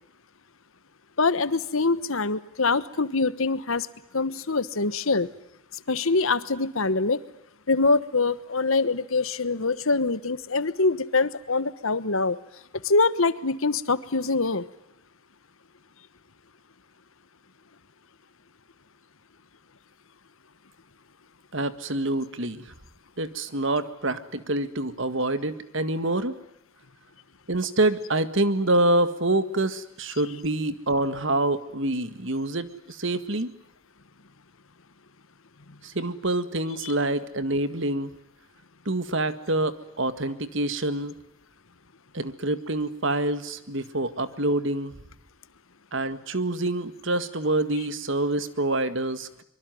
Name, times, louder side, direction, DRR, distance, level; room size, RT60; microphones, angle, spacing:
voice 1, 1.2-3.9 4.1-5.3 5.9-7.2 7.7-12.4 12.8-14.7, left 3 dB, 70° left, 15 dB, 1.3 m, -24 dB
voice 2, 21.5-22.7 23.2-26.4 27.5-33.5 35.8-38.1 38.9-41.2 42.1-45.0 45.9-49.4, right 2 dB, 60° right, 12 dB, 1.8 m, -26 dB
24.5 x 23.5 x 9.4 m, 0.80 s
head